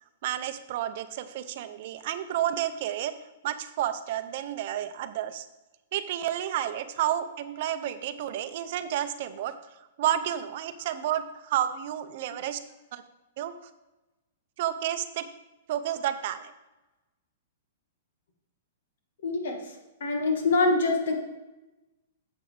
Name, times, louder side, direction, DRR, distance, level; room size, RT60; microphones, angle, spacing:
voice 1, 0.2-3.1 3.4-5.5 5.9-12.6 12.9-13.0 13.4-13.5 14.6-15.3 15.7-16.5, right 11 dB, 55° right, 11 dB, 0.6 m, -31 dB
voice 2, 19.2-19.6 20.0-21.1, left 3 dB, 75° left, 3 dB, 1.7 m, -24 dB
8.4 x 7.6 x 3.4 m, 1.0 s
hypercardioid pair, 135°, 0 cm